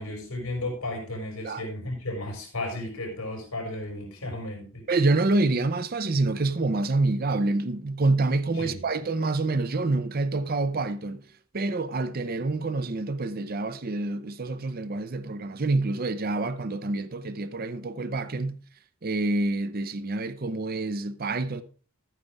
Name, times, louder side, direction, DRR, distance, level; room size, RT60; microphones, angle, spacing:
voice 1, 0.0-4.9 8.6-8.8, left 1 dB, 85° left, 4.9 m, -34 dB
voice 2, 4.9-11.2 11.5-18.6 19.0-21.6, right 2 dB, 40° right, 0.6 m, -27 dB
12.0 x 9.2 x 3.4 m
head